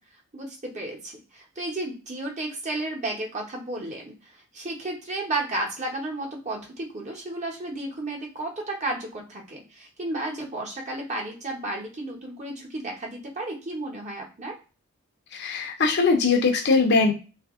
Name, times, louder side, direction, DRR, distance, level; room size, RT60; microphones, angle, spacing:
voice 1, 0.3-14.5, right 2 dB, 35° right, 0 dB, 1.0 m, -33 dB
voice 2, 15.3-17.1, left 4 dB, 50° left, 3 dB, 0.7 m, -21 dB
2.9 x 2.6 x 3.6 m, 0.33 s
head